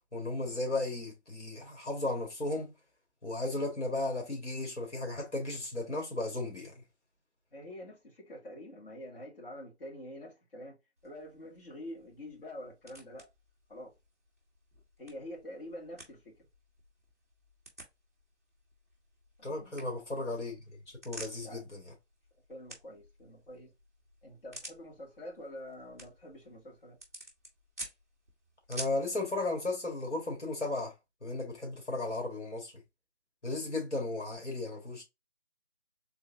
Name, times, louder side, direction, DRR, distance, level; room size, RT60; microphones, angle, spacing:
voice 1, 0.1-2.7 3.2-6.8 19.4-20.6 20.9-21.8 28.7-30.9 31.2-32.7 33.4-35.0, left 2 dB, 80° left, 1.9 m, -35 dB
voice 2, 7.5-10.8 11.0-13.3 13.7-13.9 15.0-16.5 19.4-19.8 21.4-21.6 22.5-23.7 24.2-27.0, left 1 dB, 50° left, 2.1 m, -46 dB
sound 1, 11.0-29.1, right 1 dB, 15° right, 0.6 m, -52 dB
3.7 x 3.5 x 2.6 m
figure-of-eight pair, 155°, 34 cm